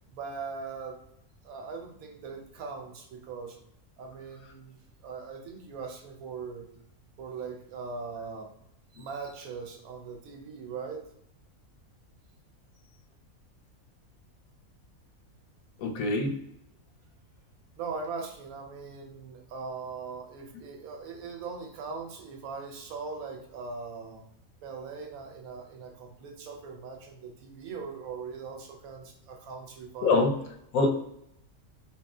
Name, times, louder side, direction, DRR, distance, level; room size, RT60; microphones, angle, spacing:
voice 1, 0.1-1.0 1.4-3.6 4.0-4.8 5.0-6.6 7.2-8.5 8.9-11.0 17.8-24.2 24.6-30.3 30.8-30.9, right 5 dB, 80° right, 2 dB, 1.0 m, -40 dB
voice 2, 15.8-16.4 30.0-30.4 30.7-30.9, left 3 dB, 80° left, 3 dB, 1.0 m, -24 dB
2.9 x 2.6 x 2.2 m, 0.77 s
omnidirectional pair, 1.5 m